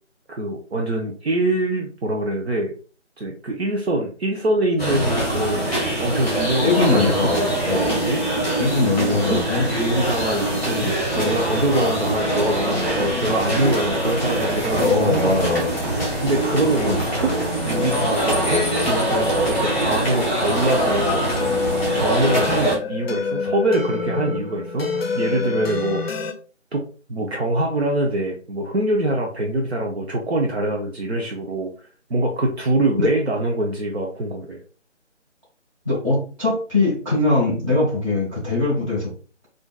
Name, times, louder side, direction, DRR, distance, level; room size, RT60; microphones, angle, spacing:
voice 1, 0.3-2.7 3.2-7.5 7.8-8.5 9.0-9.4 9.8-17.3 17.6-21.4 21.9-26.2 26.7-26.8 27.1-31.7 32.1-34.6, right 1 dB, 60° right, 0 dB, 0.6 m, -24 dB
sound 1, 4.8-22.8, right 1 dB, 10° left, 1.1 m, -23 dB
voice 2, 6.6-8.0 8.6-9.6 14.7-15.7 16.9-17.0 33.0-33.1 35.8-39.1, left 3 dB, 25° right, -6 dB, 1.4 m, -21 dB
sound 2, 12.8-26.3, left 4 dB, 55° left, 0.5 m, -30 dB
3.7 x 2.5 x 2.2 m, 0.38 s
figure-of-eight pair, 160°, 37 cm